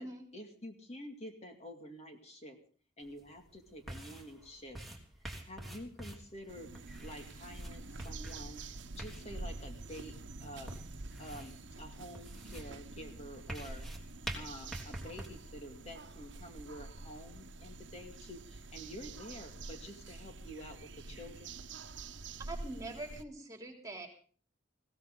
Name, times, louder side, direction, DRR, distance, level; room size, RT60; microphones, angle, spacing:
voice 1, 0.3-2.6 3.0-4.8 5.4-6.7 7.0-10.1 10.4-10.8 11.2-13.9 14.3-21.6, equal, 35° left, 4 dB, 2.3 m, -48 dB
sound 1, 3.0-15.3, right 1 dB, ahead, 3.3 m, -48 dB
sound 2, 6.5-23.2, right 2 dB, 75° right, 1.1 m, -47 dB
voice 2, 22.4-24.1, right 2 dB, 20° right, 3 dB, 3.5 m, -43 dB
20.5 x 17.0 x 3.9 m, 0.43 s
head